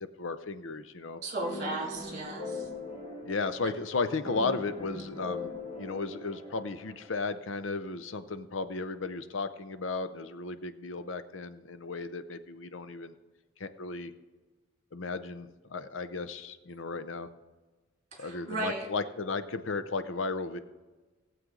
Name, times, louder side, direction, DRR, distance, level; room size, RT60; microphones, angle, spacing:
voice 1, 0.2-1.2 3.2-5.5 5.8-13.1 13.6-14.1 14.9-17.3 18.2-20.6, left 3 dB, 80° left, 12 dB, 0.7 m, -34 dB
voice 2, 1.2-2.7 18.1-18.9, right 2 dB, 40° right, 0 dB, 2.6 m, -35 dB
sound 1, 1.4-7.1, left 2 dB, 30° left, 2.4 m, -41 dB
18.0 x 7.7 x 3.8 m, 1.3 s
head